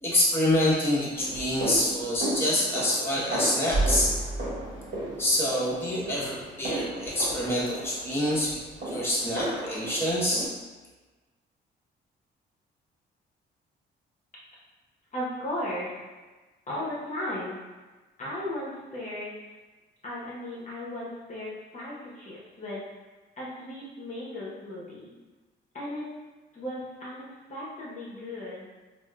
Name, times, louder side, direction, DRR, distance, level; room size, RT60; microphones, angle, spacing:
voice 1, 0.0-4.1 5.2-10.5, left 1 dB, 10° left, -7 dB, 0.9 m, -26 dB
sound 1, 1.1-10.5, right 1 dB, 70° right, 1.3 m, -33 dB
voice 2, 15.1-15.9 16.7-17.6 18.2-19.4 20.0-22.9 23.4-25.1 25.7-26.0 26.5-28.7, left 1 dB, 40° left, -6 dB, 0.9 m, -36 dB
3.5 x 2.5 x 2.2 m, 1.3 s
cardioid pair, 90°, 20 cm